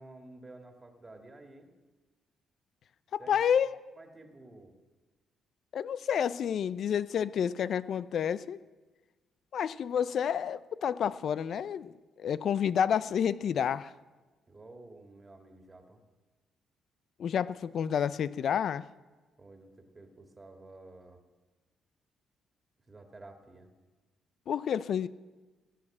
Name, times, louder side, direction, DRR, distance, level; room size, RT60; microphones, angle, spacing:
voice 1, 0.0-1.7 3.2-3.4 4.0-4.8 14.5-16.0 19.4-21.2 22.9-23.7, right 2 dB, 25° right, 4 dB, 1.9 m, -51 dB
voice 2, 3.1-3.7 5.7-8.6 9.5-11.9 12.2-13.9 17.2-18.8 24.5-25.1, left 8 dB, 60° left, 16 dB, 0.5 m, -29 dB
16.5 x 8.6 x 7.2 m, 1.3 s
cardioid pair, 90°, 0 cm